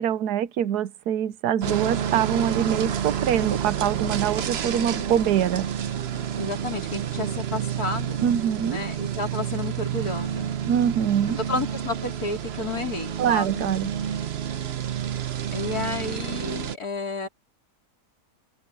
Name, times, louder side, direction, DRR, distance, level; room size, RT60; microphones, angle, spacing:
voice 1, 0.0-5.7 8.2-8.8 10.7-11.4 13.2-13.9, right 9 dB, 80° right, 1.3 m, -24 dB
sound 1, 1.6-16.8, right 9 dB, 50° right, 0.9 m, -29 dB
voice 2, 6.4-8.2 8.7-10.5 11.5-13.5 15.5-17.3, left 3 dB, 70° left, 4.3 m, -31 dB
omnidirectional pair, 1.7 m